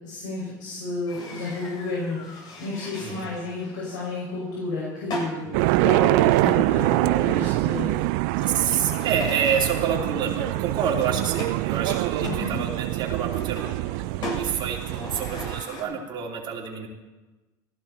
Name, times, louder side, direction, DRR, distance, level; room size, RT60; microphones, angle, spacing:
voice 1, 0.0-7.9 8.3-8.4 12.2-12.6, left 2 dB, 85° left, -7 dB, 6.4 m, -31 dB
sound 1, 1.1-15.8, left 1 dB, 50° left, 7.3 m, -40 dB
voice 2, 5.5-5.8 6.1-6.4 8.5-16.9, right 7 dB, 50° right, -2 dB, 3.2 m, -28 dB
sound 2, 5.5-15.6, right 20 dB, 75° right, 0.4 m, -24 dB
18.0 x 15.5 x 4.4 m, 1.1 s
supercardioid pair, 90°, 10 cm